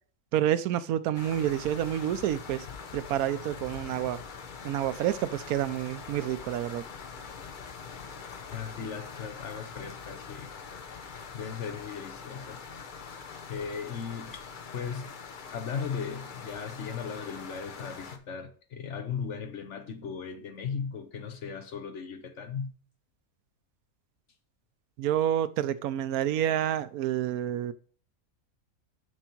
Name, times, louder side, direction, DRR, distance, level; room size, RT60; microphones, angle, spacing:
voice 1, 0.3-2.7 2.9-4.2 4.6-6.8 25.0-27.7, right 11 dB, 85° right, 1.1 m, -28 dB
sound 1, 1.1-18.2, left 5 dB, 45° left, 0.8 m, -43 dB
voice 2, 8.5-10.5 11.3-12.6 13.5-14.5 14.7-15.1 15.5-22.7, left 6 dB, 60° left, 1.1 m, -37 dB
6.9 x 6.3 x 4.5 m
omnidirectional pair, 1.5 m